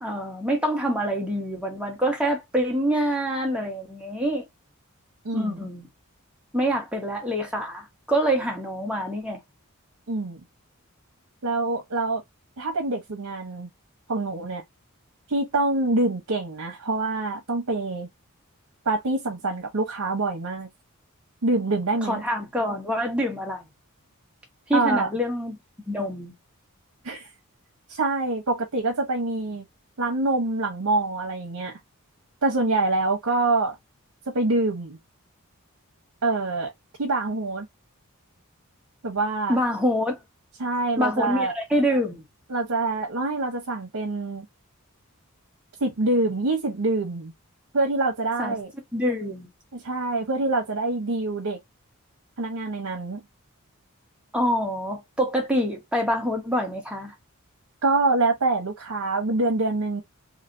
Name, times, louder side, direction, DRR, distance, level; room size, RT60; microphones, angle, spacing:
voice 1, 0.0-4.4 5.3-5.9 6.5-9.4 22.0-23.6 24.7-25.6 25.9-26.3 39.5-40.1 41.0-42.3 48.4-48.6 48.9-49.5 54.3-57.1, equal, 5° right, 1.2 m, -26 dB
voice 2, 5.2-5.6 10.1-10.4 11.4-12.2 12.6-13.7 14.1-14.6 15.3-18.1 18.8-20.7 21.4-22.2 24.7-25.1 27.0-27.3 27.9-29.7 30.0-31.8 32.4-33.8 34.3-35.0 36.2-36.7 37.0-37.7 39.0-39.6 40.6-41.5 42.5-44.5 45.8-47.3 47.7-48.7 49.7-51.6 52.4-53.2 57.8-60.0, right 2 dB, 75° right, 0.9 m, -25 dB
3.2 x 2.9 x 2.6 m
head